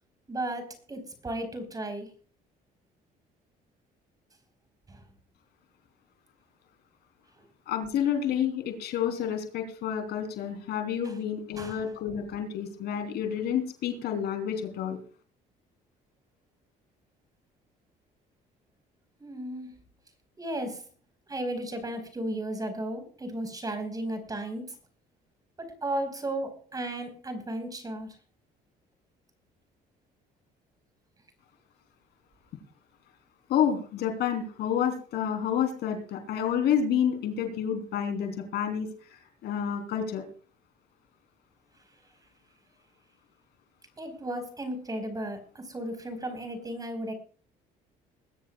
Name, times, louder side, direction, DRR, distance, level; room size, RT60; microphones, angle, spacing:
voice 1, 0.3-2.1 4.9-5.0 11.6-11.8 19.2-19.7 20.4-20.8 21.3-24.7 25.6-28.1 44.0-47.1, right 1 dB, 20° right, 7 dB, 4.8 m, -34 dB
voice 2, 7.7-15.0 33.5-40.2, left 8 dB, 75° left, 6 dB, 3.6 m, -29 dB
21.5 x 13.5 x 2.4 m, 0.40 s
cardioid pair, 110°, 17 cm